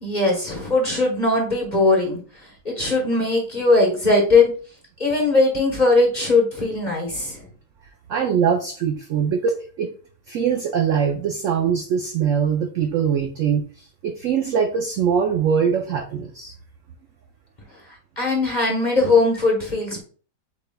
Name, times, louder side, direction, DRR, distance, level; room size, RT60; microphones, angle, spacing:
voice 1, 0.0-2.2 2.6-4.5 5.0-7.4 18.2-20.0, left 3 dB, 30° left, -1 dB, 0.9 m, -19 dB
voice 2, 8.1-9.9 10.3-16.5, right 7 dB, 80° right, 4 dB, 0.7 m, -22 dB
7.1 x 3.4 x 2.2 m, 0.41 s
omnidirectional pair, 1.9 m